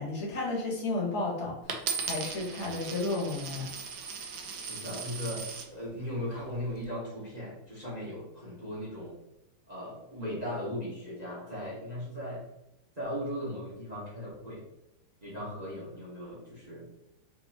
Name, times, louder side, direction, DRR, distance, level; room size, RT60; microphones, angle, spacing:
voice 1, 0.0-1.8 2.0-3.7, left 2 dB, 40° left, -4 dB, 1.3 m, -32 dB
Coin (dropping), 1.7-5.7 6.4-6.8, right 5 dB, 85° right, 0.8 m, -38 dB
voice 2, 4.7-9.2 9.7-12.5 13.0-14.6 15.2-16.9, equal, 25° right, -7 dB, 1.0 m, -38 dB
5.3 x 2.7 x 2.8 m, 0.87 s
omnidirectional pair, 2.4 m